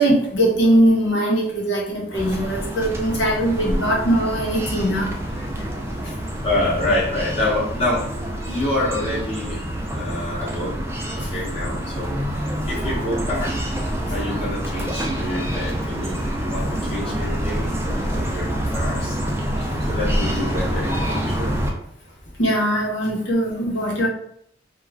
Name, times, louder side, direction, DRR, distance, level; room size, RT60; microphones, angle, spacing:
voice 1, 0.0-5.1 5.3-5.7 6.0-6.1 11.2-11.3 16.2-16.3 20.9-21.1 22.4-24.1, right 1 dB, 85° left, -3 dB, 0.9 m, -21 dB
sound 1, 2.1-21.7, equal, 15° right, 0.4 m, -26 dB
voice 2, 6.4-8.1 8.5-9.6 9.9-10.8 11.3-12.2 12.6-13.5 14.1-19.2 19.8-21.6, left 1 dB, 35° left, -7 dB, 0.8 m, -27 dB
2.4 x 2.3 x 3.2 m, 0.68 s
head